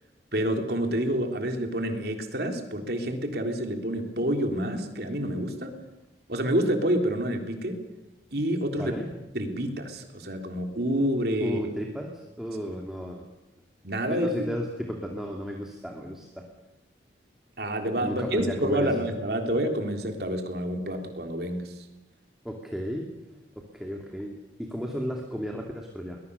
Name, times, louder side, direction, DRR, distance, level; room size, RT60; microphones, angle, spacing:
voice 1, 0.3-5.7 6.3-7.8 8.3-8.9 9.3-11.6 12.7-12.8 13.8-14.4 17.6-21.7, equal, 60° right, 4 dB, 3.5 m, -28 dB
voice 2, 8.7-9.1 11.4-13.2 14.0-16.4 18.0-19.1 22.4-23.1 23.7-26.2, equal, 5° right, 0 dB, 2.4 m, -34 dB
22.5 x 20.5 x 6.9 m, 0.98 s
head